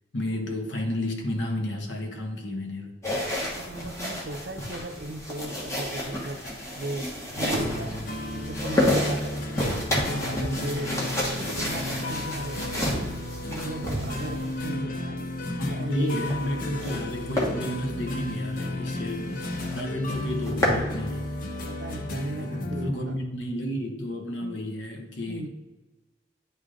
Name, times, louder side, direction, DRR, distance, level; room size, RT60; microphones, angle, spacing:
voice 1, 0.1-3.0 15.5-21.5 22.4-25.5, left 1 dB, 85° left, 2 dB, 1.0 m, -32 dB
sound 1, 3.0-14.7 16.0-17.0 17.3-17.5 18.0-18.2 18.6-18.7 19.0-19.1 19.4-19.8 20.2-20.9, left 1 dB, 15° left, 1.2 m, -30 dB
voice 2, 3.3-6.4 6.7-8.0 8.3-9.6 9.9-13.1 13.4-15.3 15.7-16.3 21.6-23.2 24.3-24.7 25.2-25.5, right 1 dB, 70° right, 5 dB, 0.6 m, -36 dB
sound 2, 7.4-22.9, left 1 dB, 50° left, 0.7 m, -33 dB
9.3 x 3.3 x 3.7 m, 1.2 s
head